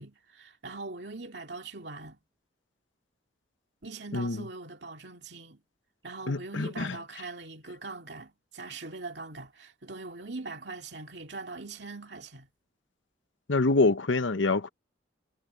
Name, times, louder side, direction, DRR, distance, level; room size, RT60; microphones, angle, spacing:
voice 1, 0.0-2.2 3.8-5.6 6.0-12.5, right 3 dB, 65° right, 2.6 m, -42 dB
voice 2, 6.3-6.9 13.5-14.7, left 3 dB, 90° left, 1.0 m, -25 dB
head